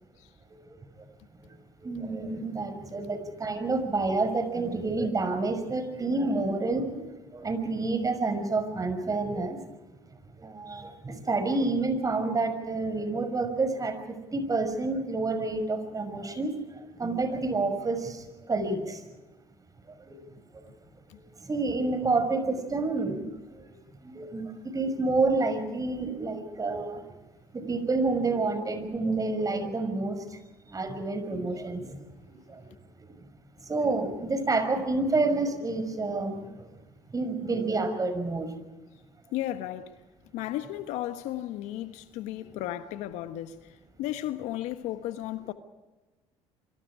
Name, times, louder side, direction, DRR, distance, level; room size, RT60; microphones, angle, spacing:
voice 1, 1.8-9.6 10.4-19.0 20.1-20.2 20.5-20.6 21.4-23.2 23.5-23.6 24.0-27.1 27.5-30.4 30.7-32.7 33.6-36.7 37.1-38.5 42.5-42.6, right 3 dB, 30° right, 5.8 m, -29 dB
voice 2, 39.3-40.0 40.3-45.5, left 13 dB, 75° left, 1.4 m, -34 dB
28.0 x 24.5 x 5.0 m
hypercardioid pair, 65°, 12 cm